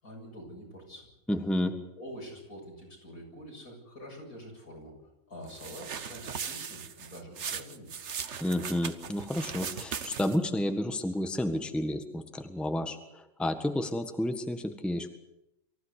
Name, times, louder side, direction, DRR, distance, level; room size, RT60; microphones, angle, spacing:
voice 1, 0.0-1.1 2.0-4.9 5.3-7.9, equal, 85° left, 0 dB, 8.3 m, -46 dB
voice 2, 1.3-1.7 8.4-15.1, left 1 dB, ahead, 6 dB, 1.5 m, -31 dB
sound 1, 5.5-10.5, right 7 dB, 55° right, 1.3 m, -38 dB
24.5 x 15.5 x 8.4 m, 0.87 s
omnidirectional pair, 1.5 m